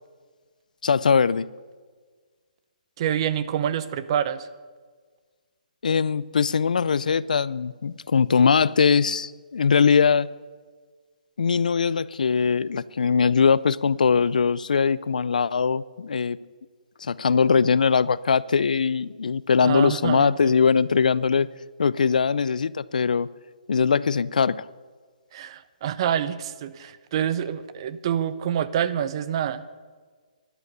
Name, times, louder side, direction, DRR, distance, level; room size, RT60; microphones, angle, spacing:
voice 1, 0.8-1.5 5.8-10.3 11.4-16.4 17.0-21.5 21.8-23.3 23.7-24.7, left 6 dB, 80° left, 20 dB, 0.5 m, -21 dB
voice 2, 3.0-4.5 19.6-20.5 25.3-29.6, right 9 dB, 40° right, 15 dB, 0.7 m, -27 dB
12.5 x 11.0 x 6.7 m, 1.5 s
hypercardioid pair, 150°, 4 cm